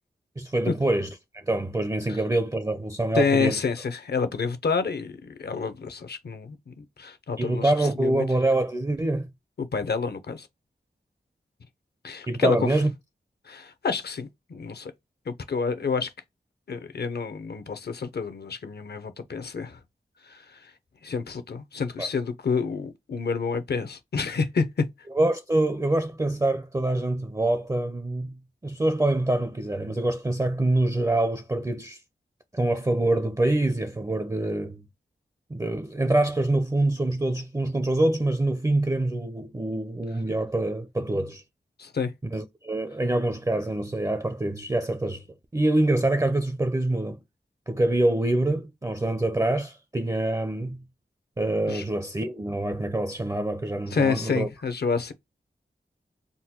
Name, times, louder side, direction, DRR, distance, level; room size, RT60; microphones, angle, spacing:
voice 1, 0.4-3.6 7.4-9.3 12.3-12.9 22.0-22.1 25.2-32.0 32.5-34.8 35.5-41.4 42.3-45.2 45.5-47.2 47.7-50.8 51.4-54.5, right 2 dB, 20° right, 0.4 m, -25 dB
voice 2, 3.1-8.2 9.6-10.5 12.0-12.8 13.4-14.9 15.3-16.1 16.7-19.8 20.2-20.7 21.0-24.9 41.8-42.1 51.7-51.8 53.9-55.1, left 5 dB, 65° left, 0.6 m, -28 dB
3.7 x 2.2 x 2.8 m
wide cardioid pair, 65°, 18 cm